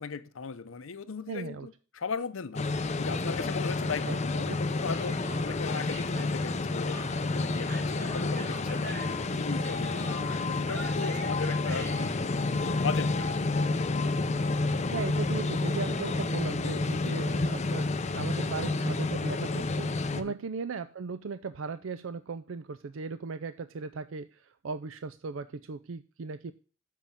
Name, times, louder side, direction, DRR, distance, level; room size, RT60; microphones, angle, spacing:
voice 1, 0.0-5.1 5.4-7.0 7.3-9.0 9.4-13.7 15.2-15.4 17.0-17.2 20.1-20.3, left 5 dB, 85° left, 0.7 m, -38 dB
voice 2, 1.3-1.7 4.1-4.2 4.5-4.6 14.9-26.5, right 4 dB, 75° right, 0.5 m, -37 dB
sound 1, 2.5-20.2, left 3 dB, 35° left, 0.6 m, -30 dB
Human voice, 4.9-12.2, right 1 dB, 45° right, 2.9 m, -44 dB
7.4 x 5.4 x 7.2 m
head